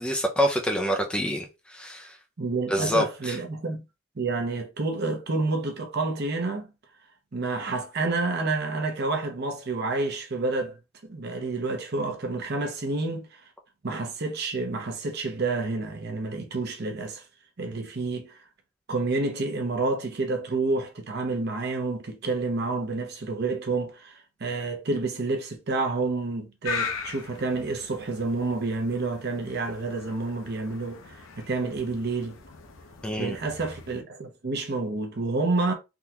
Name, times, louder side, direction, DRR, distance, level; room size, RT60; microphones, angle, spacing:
voice 1, 0.0-2.2 2.7-3.4 33.0-33.4, equal, 5° left, 0.4 m, -26 dB
voice 2, 2.4-3.8 4.2-6.7 7.3-10.8 11.0-13.4 13.8-17.2 17.6-18.4 18.9-32.4 33.2-35.7, right 3 dB, 55° right, 0.8 m, -29 dB
sound 1, 26.6-34.0, left 5 dB, 80° left, 0.7 m, -39 dB
3.6 x 2.3 x 2.9 m
head